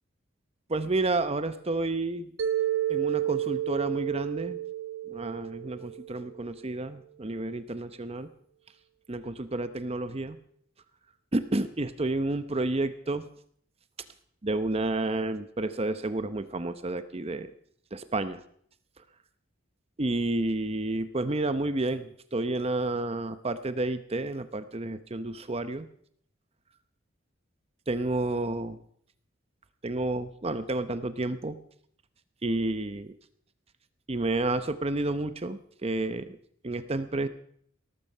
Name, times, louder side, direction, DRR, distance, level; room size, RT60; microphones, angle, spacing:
voice 1, 0.7-2.3 2.9-4.6 5.1-8.3 9.1-10.4 11.3-13.2 14.4-17.5 17.9-18.4 20.0-25.9 27.9-28.8 29.8-31.6 32.4-33.1 34.1-36.4 36.6-37.3, right 2 dB, 30° right, 11 dB, 0.8 m, -30 dB
Mallet percussion, 2.4-6.5, right 12 dB, 65° right, 1.1 m, -31 dB
18.0 x 14.0 x 5.5 m, 0.64 s
head